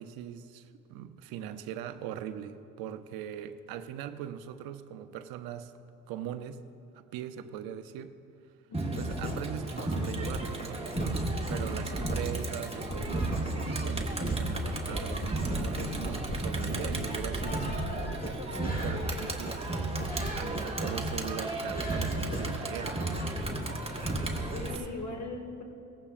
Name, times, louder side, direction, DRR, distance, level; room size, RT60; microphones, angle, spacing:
voice 1, 0.0-5.7 6.1-6.6 6.9-8.2 8.9-10.9 11.5-18.2 18.5-19.7 20.3-23.3 24.7-24.9, right 10 dB, 80° right, 10 dB, 0.7 m, -41 dB
Crowd, 8.7-24.8, right 2 dB, 15° right, 1.5 m, -34 dB
sound 1, 9.0-24.7, equal, 25° left, 3.5 m, -37 dB
sound 2, 14.3-19.3, right 6 dB, 55° right, 0.8 m, -47 dB
voice 2, 24.5-25.6, left 2 dB, 50° left, 3 dB, 2.0 m, -40 dB
17.0 x 14.5 x 2.5 m, 2.6 s
supercardioid pair, 65°, 35 cm